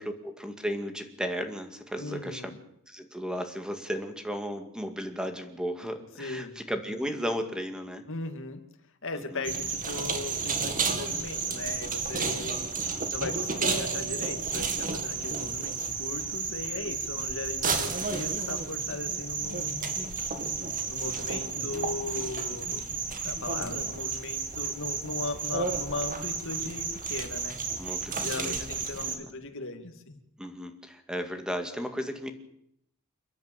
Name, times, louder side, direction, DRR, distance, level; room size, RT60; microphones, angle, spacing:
voice 1, 0.0-2.5 2.9-8.0 9.2-9.4 12.6-12.7 16.9-17.3 27.8-28.6 29.0-29.3 30.4-32.3, equal, 5° right, 6 dB, 2.1 m, -35 dB
voice 2, 2.0-2.6 6.2-6.6 8.1-8.6 9.0-20.1 20.9-22.9 23.2-27.6 28.2-30.2, left 3 dB, 65° left, 6 dB, 2.5 m, -38 dB
sound 1, 9.4-29.2, right 5 dB, 40° right, 2.3 m, -32 dB
29.0 x 10.5 x 9.0 m, 0.75 s
head